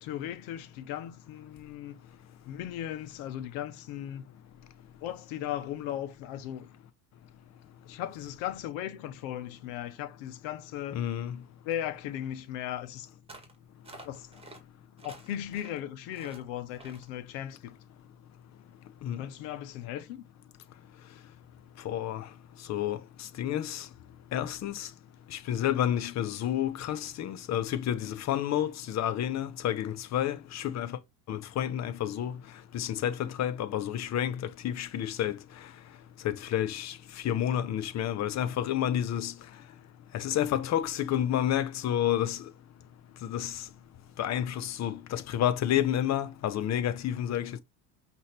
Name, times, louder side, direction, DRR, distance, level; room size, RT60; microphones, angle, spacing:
voice 1, 0.0-2.0 2.5-4.3 5.0-6.7 7.8-11.0 11.6-13.1 14.0-14.3 15.0-17.8 19.2-20.2, left 11 dB, 65° left, 1.1 m, -37 dB
voice 2, 10.9-11.4 19.0-19.3 21.8-22.3 22.7-23.9 24.3-24.9 25.3-31.0 31.3-32.4 32.7-35.4 36.2-37.0 37.2-39.3 40.1-42.4 43.3-43.6 44.2-47.6, left 11 dB, 35° left, 0.7 m, -30 dB
sound 1, 13.3-13.6 13.8-14.6 15.0-15.8 16.1-16.4 16.8-17.1, right 2 dB, 10° right, 1.5 m, -49 dB
5.4 x 2.9 x 3.3 m
supercardioid pair, 105°, 50 cm